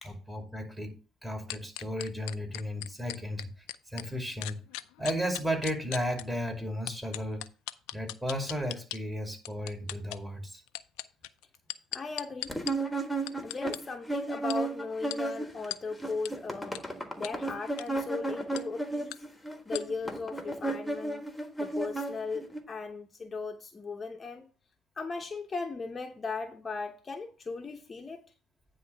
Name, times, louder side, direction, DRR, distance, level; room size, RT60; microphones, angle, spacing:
voice 1, 0.0-3.5 3.9-4.6 5.0-7.5 7.9-10.6, equal, 10° right, 2.5 m, -34 dB
sound 1, 1.5-4.1 4.4-6.2 6.9-9.0 9.4-10.2 10.7-12.7 13.3-13.8 14.5-14.6 15.1-15.2 15.7-15.8 16.2-16.3 16.7-16.8 17.2-17.3 17.7-17.9 18.6-18.7 19.1-19.2 19.7-19.8, left 17 dB, 80° left, 0.4 m, -37 dB
voice 2, 11.9-12.5 13.4-16.8 17.2-19.2 19.7-21.2 21.6-24.5 25.0-28.2, left 4 dB, 30° left, 0.9 m, -37 dB
sound 2, 12.5-15.7 15.9-22.6, right 2 dB, 10° left, 1.4 m, -34 dB
9.5 x 3.2 x 6.8 m
supercardioid pair, 80°, 0 cm